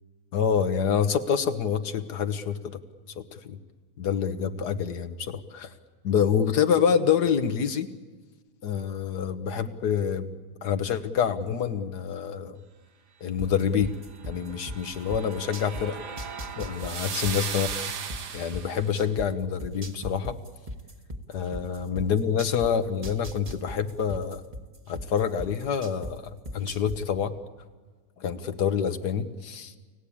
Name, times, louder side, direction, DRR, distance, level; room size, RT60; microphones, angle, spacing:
voice 1, 0.3-2.8 3.2-3.6 4.0-5.7 6.0-7.9 8.6-10.4 10.6-12.6 13.2-13.9 14.3-16.0 16.6-17.7 18.3-20.4 21.3-24.4 24.9-26.2 26.5-27.3 28.2-29.7, left 7 dB, 80° left, 10 dB, 1.8 m, -27 dB
sound 1, 13.4-15.8 16.2-19.3 19.6-22.7 23.0-26.1 26.5-27.0, equal, 25° right, 1.5 m, -37 dB
sound 2, 14.3-18.9, right 7 dB, 85° right, 1.8 m, -36 dB
30.0 x 18.5 x 8.6 m, 1.4 s
omnidirectional pair, 1.7 m